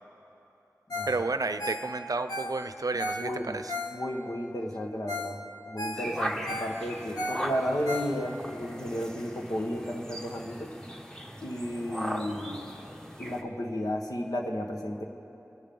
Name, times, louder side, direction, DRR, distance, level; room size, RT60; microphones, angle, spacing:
Ringtone, 0.9-1.2 1.4-4.3 4.8-4.9 5.1-5.4 5.6-8.5 8.9-9.0, left 1 dB, 85° left, 1.5 m, -36 dB
voice 1, 1.0-3.7, right 3 dB, 75° right, 10 dB, 0.5 m, -31 dB
voice 2, 3.2-3.6 3.9-10.7 11.4-12.6 13.2-15.0, equal, 70° left, 1 dB, 1.5 m, -33 dB
sound 1, 6.0-13.4, equal, 10° left, 1.3 m, -38 dB
24.5 x 11.0 x 3.9 m, 3.0 s
wide cardioid pair, 40°, 6 cm